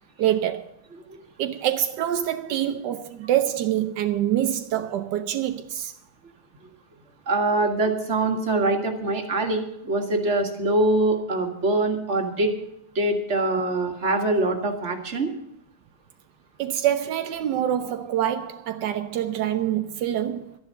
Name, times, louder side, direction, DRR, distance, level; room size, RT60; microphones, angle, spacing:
voice 1, 0.2-0.7 1.4-5.9 16.6-20.6, right 11 dB, 85° right, 1.3 m, -25 dB
voice 2, 7.3-12.5 13.0-15.3, right 2 dB, 40° right, 2.1 m, -23 dB
12.5 x 10.5 x 6.4 m
omnidirectional pair, 1.8 m